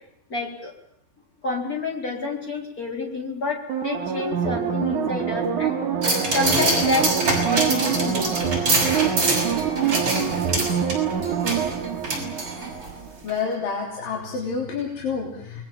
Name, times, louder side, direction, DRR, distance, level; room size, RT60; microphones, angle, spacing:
voice 1, 0.3-0.7 1.4-5.8 6.3-8.3 15.4-15.6, left 2 dB, 25° left, 1 dB, 4.4 m, -28 dB
sound 1, 3.7-13.1 13.4-13.5, right 8 dB, 60° right, 3.6 m, -25 dB
sound 2, 6.0-12.9 13.3-13.4, right 2 dB, 40° right, 7.2 m, -25 dB
voice 2, 13.2-15.6, left 5 dB, 80° left, -1 dB, 5.0 m, -28 dB
28.5 x 21.0 x 7.3 m, 0.77 s
omnidirectional pair, 3.9 m